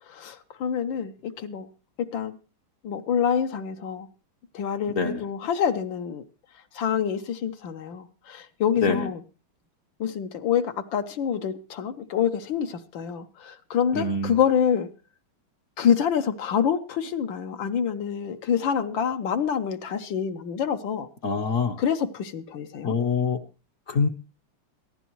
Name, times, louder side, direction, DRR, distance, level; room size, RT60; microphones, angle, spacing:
voice 1, 0.0-1.7 2.0-2.4 2.8-4.1 4.5-6.2 6.5-9.2 10.0-14.9 15.8-21.1 21.8-22.9, left 8 dB, 70° left, 8 dB, 1.6 m, -27 dB
voice 2, 4.9-5.2 8.8-9.1 13.9-14.3 21.2-21.8 22.8-23.4 23.9-24.1, left 4 dB, 50° left, 5 dB, 1.1 m, -25 dB
22.5 x 11.0 x 3.1 m, 0.33 s
omnidirectional pair, 2.2 m